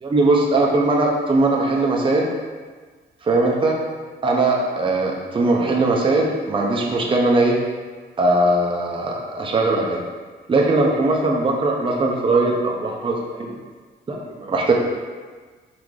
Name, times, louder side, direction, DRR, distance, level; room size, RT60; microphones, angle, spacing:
voice 1, 0.0-2.3 3.3-3.8 4.2-7.6 8.2-10.0 10.5-13.5 14.1-14.7, right 2 dB, 25° right, -1 dB, 0.6 m, -20 dB
3.8 x 3.3 x 3.1 m, 1.4 s
cardioid pair, 95°, 20 cm